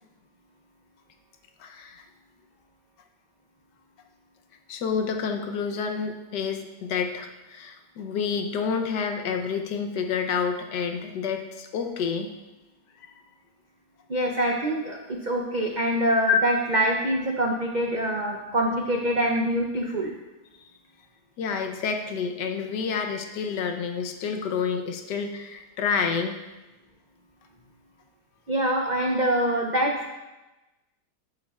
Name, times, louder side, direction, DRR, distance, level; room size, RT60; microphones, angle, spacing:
voice 1, 1.6-2.0 4.7-12.3 13.0-13.2 16.3-16.4 21.4-26.4, left 6 dB, 90° left, 5 dB, 1.4 m, -29 dB
voice 2, 14.1-15.0 15.2-20.1 28.5-30.1, right 1 dB, 70° right, 1 dB, 0.4 m, -25 dB
11.0 x 7.6 x 2.4 m, 1.1 s
omnidirectional pair, 1.8 m